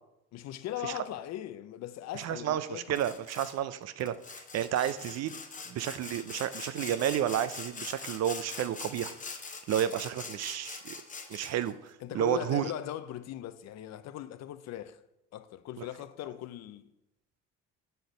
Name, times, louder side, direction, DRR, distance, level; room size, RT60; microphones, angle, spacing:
voice 1, 0.3-3.0 12.0-15.0 15.3-16.9, left 12 dB, 50° left, 0.5 m, -39 dB
voice 2, 2.1-5.4 5.7-9.4 9.7-11.0 11.3-12.7, right 10 dB, 50° right, 0.5 m, -31 dB
Sawing, 3.0-3.6 4.0-11.7, left 4 dB, 25° left, 0.8 m, -43 dB
6.6 x 4.0 x 5.2 m
supercardioid pair, 80°, 34 cm